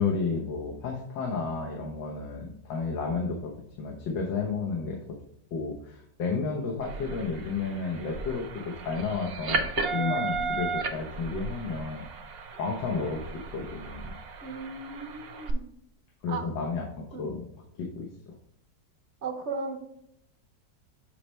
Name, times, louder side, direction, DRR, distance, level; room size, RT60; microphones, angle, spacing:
voice 1, 0.0-3.5 3.8-5.0 5.5-12.1 12.6-14.1 16.2-17.4 17.8-18.3, left 4 dB, 90° left, 0 dB, 1.7 m, -32 dB
sound 1, 6.8-15.5, right 4 dB, 65° right, 0.6 m, -35 dB
voice 2, 10.0-10.7 14.4-15.6 16.3-16.5 17.1-17.3 19.2-19.8, right 4 dB, 50° right, 4 dB, 1.0 m, -37 dB
6.6 x 5.3 x 3.0 m, 0.73 s
omnidirectional pair, 1.9 m